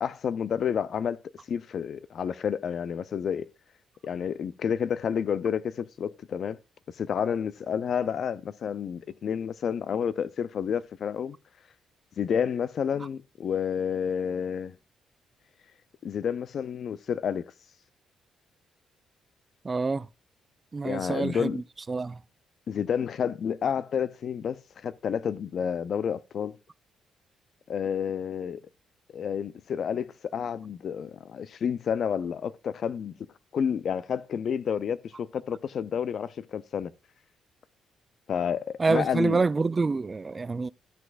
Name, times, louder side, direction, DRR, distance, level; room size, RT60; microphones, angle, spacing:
voice 1, 0.0-1.2 1.5-3.5 4.0-6.6 7.0-11.4 12.2-14.7 16.0-17.5 20.8-21.6 22.7-26.6 27.7-28.6 29.1-33.1 33.5-36.9 38.3-39.4, left 7 dB, 60° left, 0.5 m, -30 dB
voice 2, 19.6-20.1 20.7-22.2 38.8-40.7, right 4 dB, 30° right, 0.4 m, -27 dB
13.0 x 6.1 x 2.5 m
cardioid pair, 90°, 0 cm